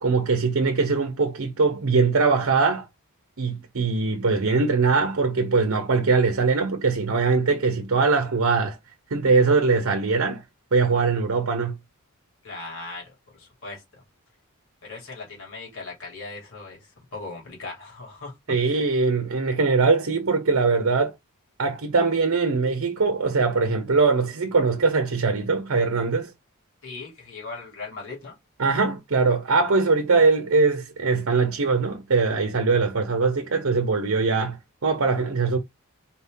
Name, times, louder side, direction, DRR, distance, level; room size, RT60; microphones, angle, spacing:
voice 1, 0.0-2.9 3.4-8.8 9.1-10.4 10.7-11.8 18.5-21.1 21.6-26.3 28.6-35.6, right 4 dB, 65° right, 0.8 m, -22 dB
voice 2, 12.4-13.8 14.8-16.8 17.1-18.3 18.7-18.8 26.8-28.3, left 3 dB, 65° left, 2.4 m, -38 dB
4.3 x 2.8 x 3.5 m
head